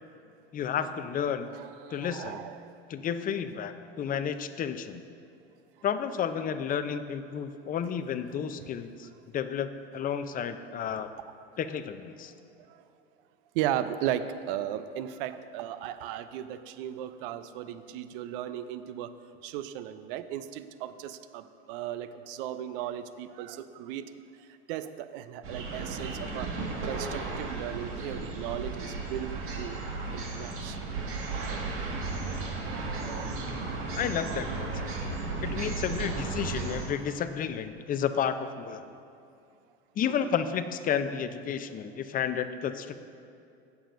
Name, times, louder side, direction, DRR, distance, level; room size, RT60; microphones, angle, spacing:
voice 1, 0.5-1.5 1.9-2.4 2.9-5.0 5.8-9.1 9.3-11.1 11.6-12.3 34.0-34.9 35.4-38.8 40.0-43.0, left 8 dB, 25° left, 10 dB, 0.6 m, -31 dB
voice 2, 1.5-2.8 8.6-8.7 12.7-12.8 13.5-19.1 19.4-24.1 24.7-26.5 26.8-29.8 30.1-30.8 32.6-33.4 40.1-40.3, right 11 dB, 60° right, 12 dB, 0.6 m, -36 dB
sound 1, 25.4-36.9, right 3 dB, 40° right, 1.7 m, -34 dB
17.5 x 7.1 x 2.6 m, 2.5 s
hypercardioid pair, 85°, 31 cm